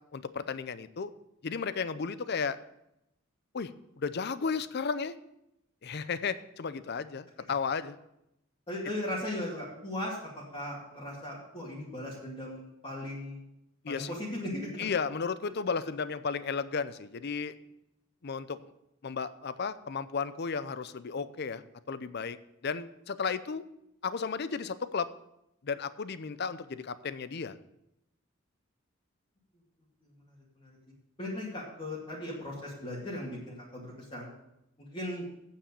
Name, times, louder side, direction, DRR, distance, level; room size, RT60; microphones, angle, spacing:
voice 1, 0.1-1.1 1.4-2.6 3.5-3.7 4.0-5.1 5.8-8.0 13.8-14.1 14.8-17.5 18.2-18.6 19.0-22.4 22.6-23.7 24.0-25.1 25.6-27.6, left 5 dB, 50° left, 14 dB, 0.5 m, -34 dB
voice 2, 8.7-13.4 13.9-14.9 30.6-30.8 31.2-34.3 34.8-35.3, left 1 dB, 25° left, -7 dB, 2.3 m, -37 dB
8.9 x 7.3 x 6.8 m, 0.83 s
head